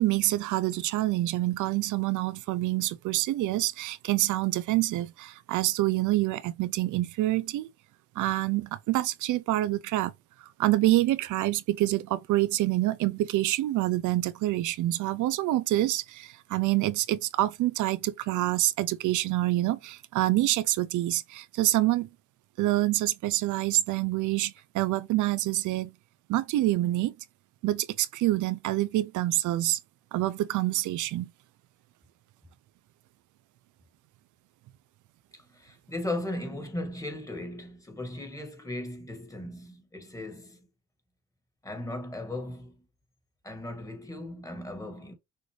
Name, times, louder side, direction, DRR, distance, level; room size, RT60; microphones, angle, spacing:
voice 1, 0.0-7.7 8.2-10.1 10.4-22.1 22.6-25.9 26.3-27.1 27.6-29.8 30.1-31.3, right 16 dB, 75° right, 0.5 m, -26 dB
voice 2, 35.3-40.7 41.6-42.8 43.4-45.2, left 1 dB, 10° left, 1.9 m, -37 dB
6.4 x 2.6 x 3.2 m
cardioid pair, 90°, 30 cm